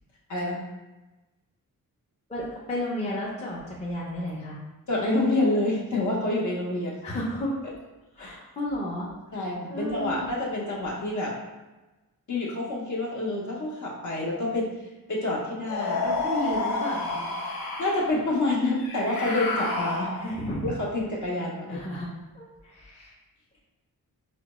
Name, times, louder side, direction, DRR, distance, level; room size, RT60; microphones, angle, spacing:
voice 1, 0.3-0.6 4.9-7.0 8.2-8.4 9.3-11.4 12.3-14.7 15.1-16.1 16.5-16.8 17.1-17.3 17.8-20.1 20.6-21.8, left 2 dB, 55° left, -4 dB, 0.7 m, -28 dB
voice 2, 2.3-4.6 7.0-7.5 8.2-9.1 9.7-10.3 16.0-17.1 20.1-20.7 21.7-22.1 22.3-23.1, left 1 dB, 20° left, -5 dB, 0.5 m, -32 dB
sound 1, 15.7-18.1 18.8-20.5, left 3 dB, 85° left, 0.8 m, -30 dB
4.9 x 2.2 x 2.9 m, 1.1 s
wide cardioid pair, 160°, 36 cm